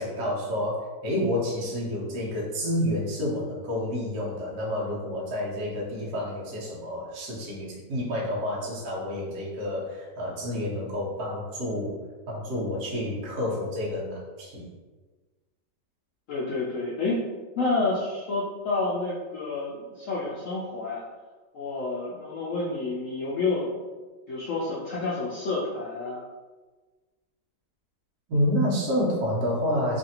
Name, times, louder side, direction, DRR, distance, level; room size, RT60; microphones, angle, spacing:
voice 1, 0.0-12.0 12.3-14.7 28.3-30.0, left 1 dB, 65° right, -5 dB, 1.2 m, -29 dB
voice 2, 16.3-17.2 17.6-21.0 21.5-23.7 24.3-26.2, left 3 dB, 80° left, -6 dB, 0.7 m, -29 dB
3.1 x 2.5 x 2.8 m, 1.3 s
omnidirectional pair, 1.9 m